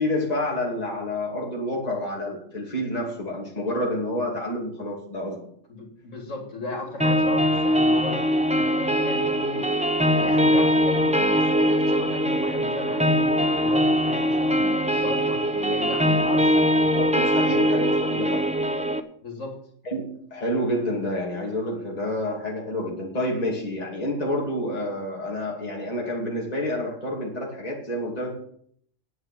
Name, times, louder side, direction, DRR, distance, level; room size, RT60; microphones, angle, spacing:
voice 1, 0.0-5.4 16.9-18.5 19.8-28.4, left 1 dB, 30° left, -3 dB, 2.7 m, -28 dB
voice 2, 5.7-9.7 10.1-16.6 19.2-19.6, left 2 dB, 80° left, 1 dB, 2.7 m, -36 dB
sound 1, 7.0-19.0, equal, 5° right, 0.6 m, -22 dB
9.8 x 7.8 x 8.7 m, 0.65 s
omnidirectional pair, 1.3 m